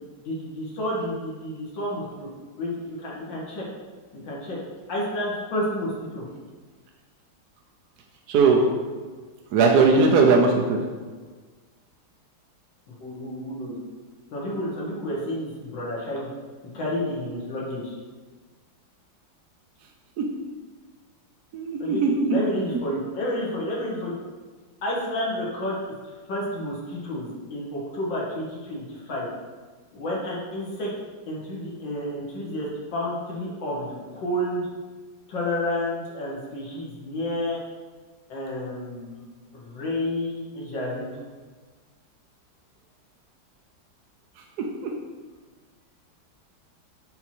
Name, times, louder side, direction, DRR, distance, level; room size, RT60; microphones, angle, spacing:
voice 1, 0.2-2.3 2.6-3.6 4.1-4.6 4.9-6.3 13.0-13.8 14.3-16.3 16.7-17.9 21.8-24.1 24.8-25.8 26.0-29.3 29.9-30.9 31.3-34.7 35.3-37.6 38.3-39.2 39.5-41.2, left 1 dB, 70° left, -5 dB, 2.0 m, -30 dB
voice 2, 8.3-8.6 9.5-10.8 20.2-20.3 21.5-22.4 44.6-44.9, right 4 dB, 70° right, 2 dB, 0.9 m, -19 dB
7.8 x 2.9 x 4.3 m, 1.4 s
omnidirectional pair, 2.2 m